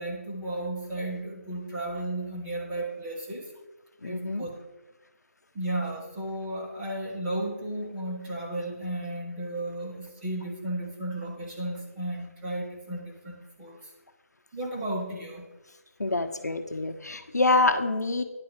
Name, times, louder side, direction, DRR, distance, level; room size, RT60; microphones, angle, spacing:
voice 1, 0.0-3.5 4.0-4.5 5.5-13.8 14.5-15.5, right 1 dB, 10° right, -4 dB, 1.2 m, -34 dB
voice 2, 4.0-4.5 16.0-18.2, left 2 dB, 80° left, 8 dB, 0.9 m, -26 dB
9.8 x 4.3 x 7.4 m, 1.1 s
figure-of-eight pair, 165°, 9 cm